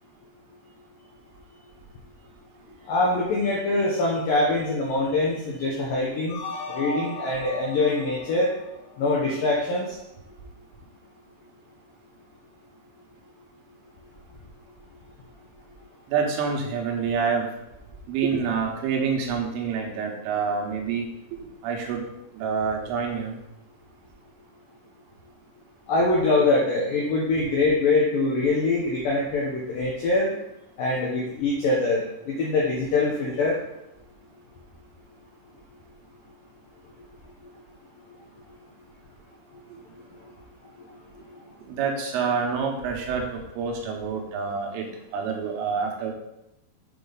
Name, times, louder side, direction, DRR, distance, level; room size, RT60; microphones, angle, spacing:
voice 1, 2.9-6.4 6.7-8.5 9.0-10.0 25.9-30.3 30.8-33.6 39.5-39.6 41.3-41.4, left 2 dB, 80° left, -4 dB, 2.0 m, -24 dB
sound 1, 6.3-9.4, left 2 dB, 65° left, 3.3 m, -37 dB
voice 2, 16.1-17.5 18.1-21.1 21.4-22.1 22.3-23.4 41.7-44.9 45.1-46.1, right 5 dB, 85° right, 1 dB, 3.7 m, -27 dB
8.1 x 5.2 x 4.0 m, 0.87 s
omnidirectional pair, 5.6 m